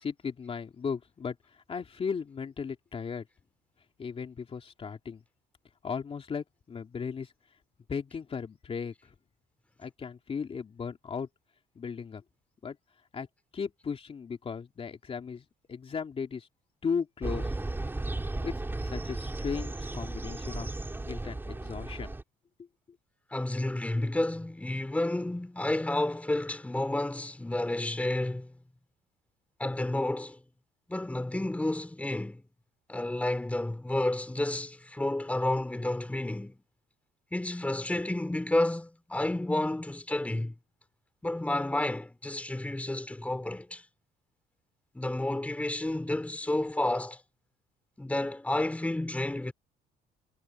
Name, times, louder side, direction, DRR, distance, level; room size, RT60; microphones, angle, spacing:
voice 1, 0.0-3.3 4.0-5.2 5.8-7.3 7.9-9.1 9.8-11.3 11.7-12.2 12.6-12.8 13.1-13.3 13.5-16.5 16.8-17.6 18.2-18.5 18.8-20.7 21.0-22.1, left 6 dB, 35° left, 3.0 m, -36 dB
sound 1, 17.2-22.2, right 2 dB, 10° right, 4.3 m, -35 dB
voice 2, 23.3-28.5 29.6-30.4 30.9-32.4 32.9-36.6 37.3-40.5 41.2-43.8 44.9-47.2 48.0-49.5, left 1 dB, 10° left, 3.2 m, -30 dB
cardioid pair, 110°, 17 cm